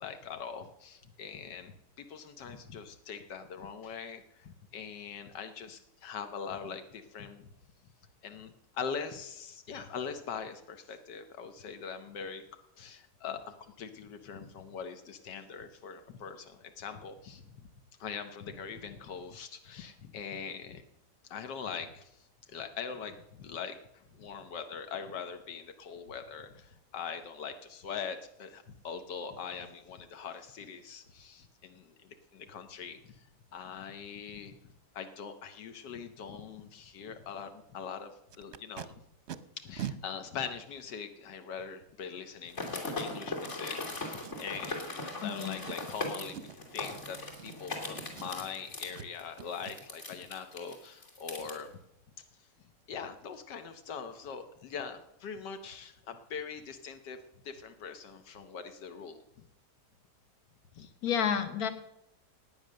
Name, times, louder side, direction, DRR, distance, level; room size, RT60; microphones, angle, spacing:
voice 1, 0.0-7.5 7.8-7.9 8.2-12.4 12.8-17.7 18.0-20.8 21.2-33.3 33.5-34.6 34.9-38.9 39.6-51.7 52.4-52.5 52.9-59.5 60.7-60.9, left 6 dB, 85° left, 8 dB, 1.6 m, -42 dB
Packing tape duct tape, 38.3-38.9 39.3-39.4 39.8-40.0 40.7-40.8 44.2-44.6 45.1-45.2 45.6-45.9 46.3-46.6 47.3-47.8 48.1-48.6 48.9-49.1 49.4-49.8 52.8-52.9 53.2-53.4 53.7-53.9 54.2-54.4 54.7-54.8, right 10 dB, 55° right, 0.8 m, -43 dB
sound 1, 42.5-51.5, left 2 dB, 45° left, 3.2 m, -39 dB
voice 2, 45.2-45.6 60.8-61.7, left 8 dB, 60° left, 9 dB, 1.7 m, -31 dB
17.5 x 9.3 x 6.4 m, 0.81 s
omnidirectional pair, 1.8 m